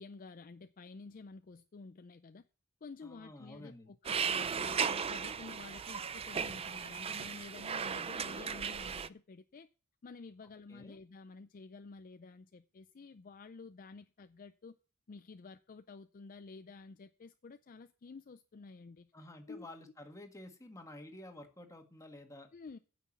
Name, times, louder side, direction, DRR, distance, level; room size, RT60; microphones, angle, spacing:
voice 1, 0.0-2.5 2.8-9.7 10.0-14.8 15.1-19.1 19.5-19.7 22.5-22.8, left 4 dB, 40° left, 0.4 m, -51 dB
voice 2, 3.0-3.9 10.7-11.0 19.1-22.5, left 1 dB, 15° left, 1.6 m, -51 dB
sound 1, 4.0-9.1, right 6 dB, 25° right, 0.4 m, -36 dB
9.5 x 5.9 x 7.1 m
head